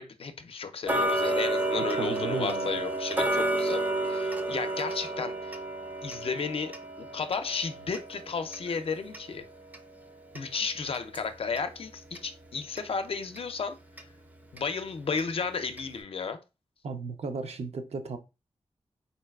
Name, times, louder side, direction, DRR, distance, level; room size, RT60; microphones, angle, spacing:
voice 1, 0.0-5.6 6.0-9.4 10.3-13.7 14.5-16.4, left 5 dB, 60° left, 0.5 m, -33 dB
Tick-tock, 0.9-11.7 12.1-12.2 12.8-12.9 13.4-13.5 14.0-14.1 14.6-14.7 15.2-15.3 15.8-15.9, right 1 dB, 15° right, 0.4 m, -31 dB
voice 2, 1.7-2.8 16.8-18.2, right 4 dB, 75° right, 0.5 m, -35 dB
3.9 x 2.3 x 2.2 m
wide cardioid pair, 80°, 11 cm